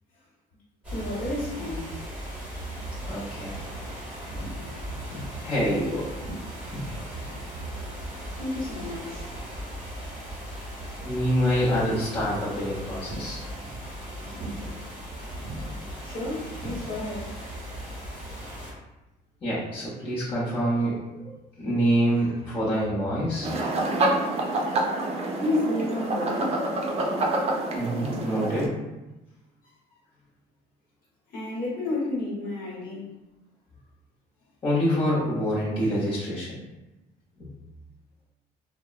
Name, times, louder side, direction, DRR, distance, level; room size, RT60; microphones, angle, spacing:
sound 1, 0.8-18.7, right 1 dB, 10° right, 1.1 m, -37 dB
voice 1, 0.9-1.9 2.3-2.7 8.3-9.3 16.0-17.3 20.4-20.5 25.4-26.7 31.3-33.1 35.8-36.1, left 2 dB, 55° left, -6 dB, 1.1 m, -31 dB
voice 2, 3.0-3.6 4.9-6.2 6.7-6.9 11.0-13.4 19.4-21.3 21.6-23.5 27.7-28.8 34.6-36.5, equal, 30° left, -9 dB, 0.8 m, -26 dB
sound 2, 23.4-28.7, right 2 dB, 40° right, 0.5 m, -27 dB
2.8 x 2.0 x 2.4 m, 1.0 s
cardioid pair, 110°, 17 cm